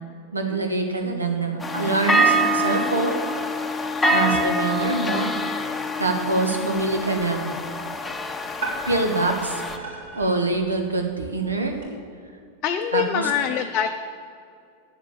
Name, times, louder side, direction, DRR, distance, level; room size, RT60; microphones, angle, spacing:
voice 1, 0.3-3.2 4.1-5.3 6.0-7.5 8.9-11.7 12.9-13.3, right 3 dB, 80° right, 4 dB, 1.5 m, -25 dB
sound 1, 1.6-9.8, right 1 dB, 10° left, 0.9 m, -25 dB
voice 2, 4.0-4.5 12.6-13.9, left 9 dB, 35° left, 4 dB, 0.6 m, -25 dB
sound 2, 6.8-11.9, right 3 dB, 60° right, 3.2 m, -39 dB
9.3 x 7.5 x 8.7 m, 2.3 s
figure-of-eight pair, 90°, 0 cm